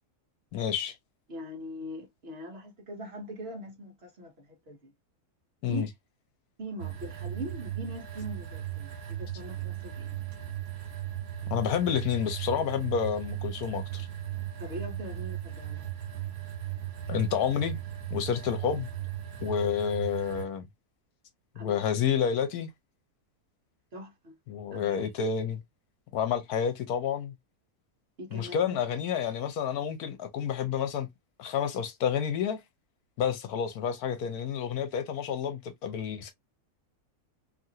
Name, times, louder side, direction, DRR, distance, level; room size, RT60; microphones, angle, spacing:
voice 1, 0.5-1.0 5.6-5.9 11.5-14.1 17.1-17.8 18.1-18.9 19.4-20.7 21.6-22.7 24.5-25.6 26.1-27.3 28.3-31.1 31.4-32.6 33.2-36.3, left 8 dB, 80° left, 1.2 m, -29 dB
voice 2, 1.3-4.9 5.7-5.9 6.6-10.2 14.6-15.8 21.5-21.8 23.9-24.3 24.7-25.1 28.2-28.8, equal, 50° right, 1.0 m, -41 dB
sound 1, 6.8-20.5, right 12 dB, 85° right, 1.3 m, -37 dB
2.9 x 2.5 x 2.7 m
omnidirectional pair, 1.6 m